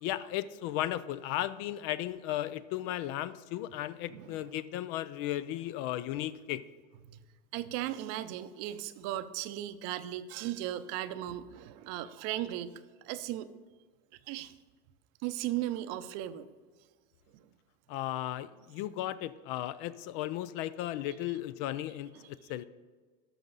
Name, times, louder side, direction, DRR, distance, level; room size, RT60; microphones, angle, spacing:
voice 1, 0.0-6.7 17.9-22.6, left 13 dB, 65° left, 16 dB, 0.5 m, -35 dB
voice 2, 7.5-13.5 14.3-14.5 15.2-16.5 17.3-17.4 22.1-22.3, right 13 dB, 60° right, 12 dB, 0.6 m, -37 dB
11.5 x 6.2 x 4.0 m, 1.4 s
supercardioid pair, 110°, 29 cm